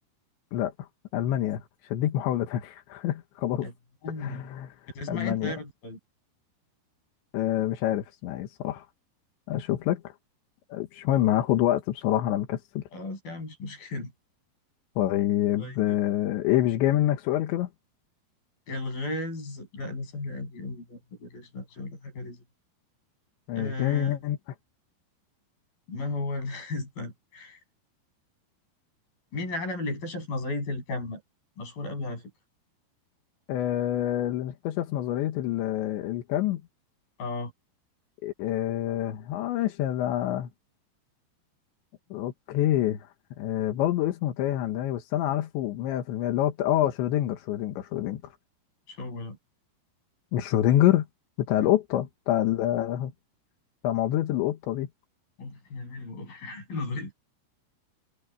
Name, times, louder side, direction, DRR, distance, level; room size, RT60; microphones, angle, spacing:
voice 1, 0.5-3.7 4.2-5.6 7.3-8.9 9.5-10.1 10.7-12.8 15.0-17.7 23.5-24.4 33.5-36.6 38.2-40.5 42.1-43.1 43.4-48.2 50.3-51.1 51.5-53.1 53.8-54.9, left 13 dB, 85° left, 3.7 m, -27 dB
voice 2, 4.0-4.4 5.0-6.0 12.9-14.1 15.6-16.0 18.7-22.4 23.5-24.2 25.9-27.6 29.3-31.2 31.6-32.2 37.2-37.5 48.9-49.4 51.6-51.7 55.4-57.1, left 2 dB, 50° left, 8.9 m, -35 dB
omnidirectional pair, 5.1 m